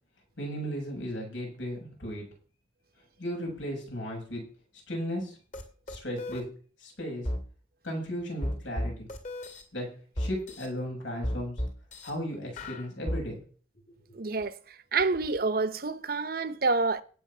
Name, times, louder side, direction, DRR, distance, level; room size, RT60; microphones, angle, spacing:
voice 1, 0.4-2.2 3.2-4.4 4.9-5.3 5.9-6.4 6.8-7.3 7.8-9.1 9.7-9.9 10.2-11.6 12.0-13.4, equal, 80° left, 7.7 m, -35 dB
sound 1, 5.5-5.6 5.9-6.4 7.2-7.4 8.4-9.6 10.2-10.7 11.2-12.1 12.6-13.2, equal, 40° left, 2.3 m, -33 dB
voice 2, 14.1-17.0, right 3 dB, 50° right, 0.8 m, -28 dB
17.5 x 6.3 x 6.1 m
head